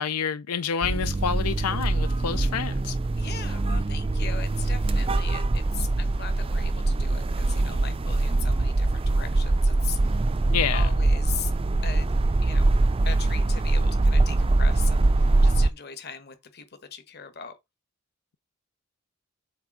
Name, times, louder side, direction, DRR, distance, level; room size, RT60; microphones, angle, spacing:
voice 1, 0.0-3.0 10.5-10.9, left 7 dB, 90° left, 0.5 m, -28 dB
sound 1, 0.8-15.7, right 2 dB, 25° right, 0.4 m, -23 dB
voice 2, 3.1-10.3 10.7-11.5 11.8-12.1 12.4-12.7 13.0-17.6, left 7 dB, 45° left, 1.2 m, -39 dB
8.1 x 3.4 x 4.8 m
head